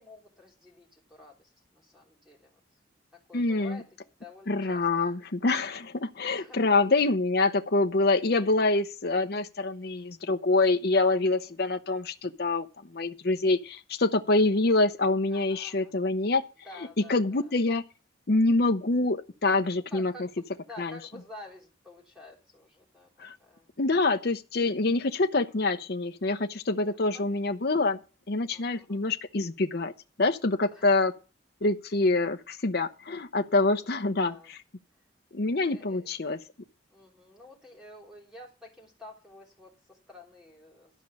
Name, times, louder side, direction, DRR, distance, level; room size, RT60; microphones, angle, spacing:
voice 1, 0.0-2.6 3.3-3.8 4.2-5.1 6.2-6.9 11.2-11.3 15.3-15.9 16.6-17.5 19.9-23.1 23.4-23.7 26.7-27.4 28.5-29.1 30.7-30.9 33.8-34.5 35.5-36.1 36.9-40.9, left 2 dB, 5° right, 3.3 m, -50 dB
voice 2, 3.3-3.8 4.5-12.7 12.9-16.4 17.1-17.8 18.3-20.1 20.8-21.0 23.2-23.3 23.8-28.0 28.3-29.9 30.2-31.1 31.6-34.3 35.3-36.4, left 2 dB, 50° left, 0.7 m, -26 dB
12.5 x 5.3 x 6.9 m
head